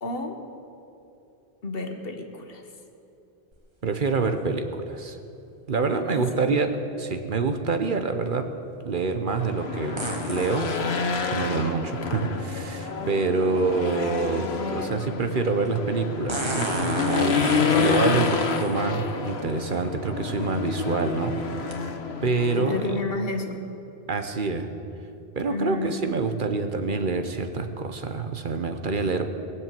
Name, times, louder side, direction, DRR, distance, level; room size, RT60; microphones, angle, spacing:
voice 1, 0.0-0.4 1.6-2.6 6.1-6.6 22.5-23.6 25.5-26.0, left 2 dB, 65° left, 5 dB, 1.5 m, -31 dB
sound 1, 3.5-3.6 10.0-10.9 12.9-13.0 16.3-18.8 19.7-19.8 20.5-20.7 21.7-21.8, right 1 dB, 25° right, 1.8 m, -33 dB
voice 2, 3.8-5.2 5.7-6.7 7.0-8.5 8.9-10.7 11.3-21.4 22.2-22.9 24.1-24.7 25.4-29.3, right 4 dB, 55° right, 7 dB, 1.0 m, -26 dB
Race car auto racing / Engine, 9.4-23.0, left 5 dB, 85° left, 1.3 m, -28 dB
21.5 x 7.7 x 7.5 m, 2.8 s
omnidirectional pair, 1.0 m